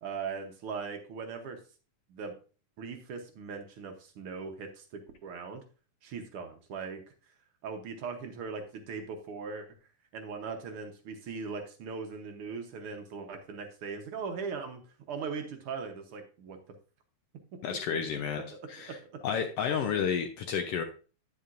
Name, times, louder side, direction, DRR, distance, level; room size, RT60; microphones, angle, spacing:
voice 1, 0.0-1.6 2.1-2.3 2.8-5.6 6.0-7.0 7.6-9.7 10.1-14.8 15.1-16.6 17.7-17.8 18.5-19.0, right 5 dB, 65° right, 5 dB, 1.5 m, -39 dB
voice 2, 17.6-18.4 18.7-19.0 19.2-20.8, left 7 dB, 75° left, 5 dB, 1.4 m, -31 dB
9.4 x 8.6 x 2.5 m, 0.36 s
omnidirectional pair, 3.4 m